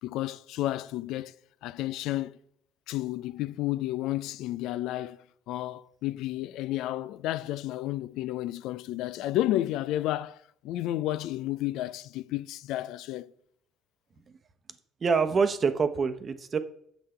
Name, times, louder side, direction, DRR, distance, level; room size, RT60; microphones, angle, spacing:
voice 1, 0.0-1.3 1.6-2.4 2.9-5.2 5.5-13.3, left 15 dB, 65° left, 0.3 m, -31 dB
voice 2, 15.0-16.6, right 5 dB, 35° right, 0.9 m, -25 dB
7.9 x 5.6 x 4.4 m
hypercardioid pair, 55°, 0 cm